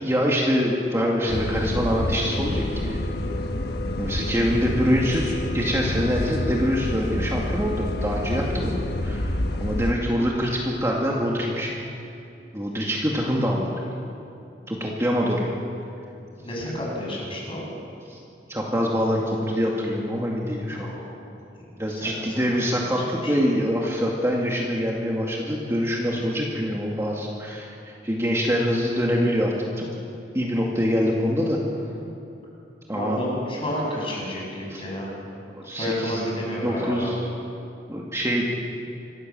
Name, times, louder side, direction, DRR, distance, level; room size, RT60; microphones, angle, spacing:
voice 1, 0.0-3.0 4.0-11.8 12.5-13.8 14.7-15.5 18.1-18.2 18.5-21.0 21.8-29.9 30.3-31.6 32.9-33.2 34.7-34.8 35.5-36.3 36.6-37.2 37.9-38.5, equal, 15° right, -2 dB, 2.2 m, -25 dB
sound 1, 1.3-9.9, left 1 dB, 65° left, 1.3 m, -28 dB
voice 2, 16.4-17.7 20.7-21.0 21.5-22.4 22.8-23.4 32.9-35.1 35.8-37.1, left 1 dB, 30° left, -3 dB, 7.3 m, -31 dB
26.5 x 15.0 x 7.7 m, 2.7 s
head